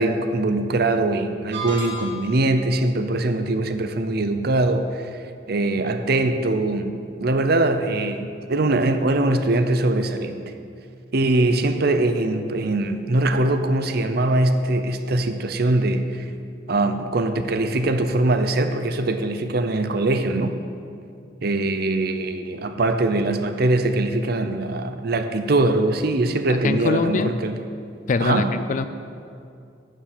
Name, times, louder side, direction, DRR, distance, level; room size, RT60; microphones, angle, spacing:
voice 1, 0.0-5.1 5.5-10.4 11.1-16.3 16.7-20.6 21.4-27.6 28.2-28.6, right 2 dB, 55° right, 0.7 m, -22 dB
sound 1, 1.5-2.5, equal, 75° right, 2.5 m, -32 dB
voice 2, 26.5-27.3 28.1-28.9, left 4 dB, 40° left, 0.4 m, -23 dB
10.5 x 7.5 x 6.8 m
head